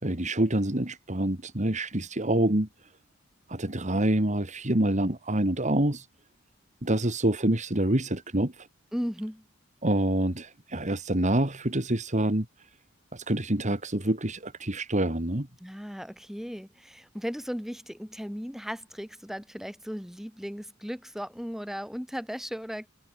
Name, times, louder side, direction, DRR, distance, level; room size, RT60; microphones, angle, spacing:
voice 1, 0.0-2.7 3.5-6.1 6.8-8.7 9.8-12.5 13.1-15.5, right 1 dB, 35° right, 2.7 m, -26 dB
voice 2, 8.9-9.4 15.6-22.9, equal, ahead, 7.9 m, -36 dB
head